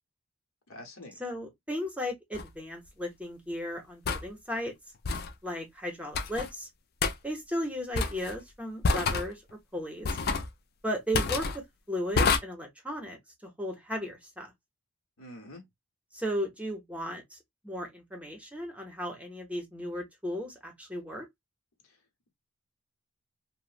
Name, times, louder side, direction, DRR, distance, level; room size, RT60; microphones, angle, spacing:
voice 1, 0.7-1.2 15.2-15.6 21.8-22.0, left 1 dB, 75° left, 1.0 m, -46 dB
voice 2, 1.2-4.7 5.4-6.7 7.2-9.4 9.7-10.2 10.8-11.6 11.9-14.5 16.1-17.4 17.6-21.3, equal, 5° right, 0.7 m, -35 dB
sound 1, 2.3-2.5 4.1-4.3 5.0-5.3 6.1-6.5 7.0-7.1 8.0-8.4 8.8-9.3 10.0-10.5 11.1-11.6 12.2-12.4, left 4 dB, 45° left, 0.4 m, -27 dB
3.1 x 2.1 x 2.4 m
head